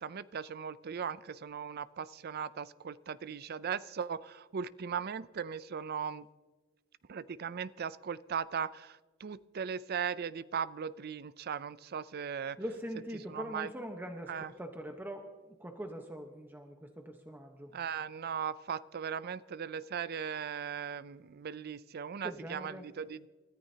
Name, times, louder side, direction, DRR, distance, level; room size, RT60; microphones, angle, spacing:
voice 1, 0.0-6.3 7.1-12.6 13.3-13.7 14.3-14.5 17.7-23.3, right 7 dB, 50° right, 17 dB, 0.4 m, -38 dB
voice 2, 12.6-15.3 15.6-17.7 22.2-22.8, equal, 10° right, 3 dB, 1.1 m, -42 dB
29.5 x 14.0 x 2.8 m, 1.3 s
head